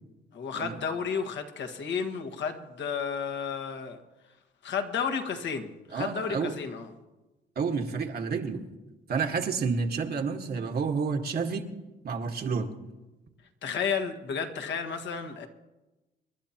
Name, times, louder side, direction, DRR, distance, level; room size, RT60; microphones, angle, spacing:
voice 1, 0.3-4.0 4.6-6.9 13.6-15.5, left 6 dB, 65° left, 5 dB, 1.6 m, -32 dB
voice 2, 5.9-6.5 7.5-8.6 9.1-11.7 12.0-12.7, right 5 dB, 50° right, 3 dB, 1.6 m, -30 dB
27.5 x 11.5 x 2.9 m, 1.1 s
cardioid pair, 90°, 20 cm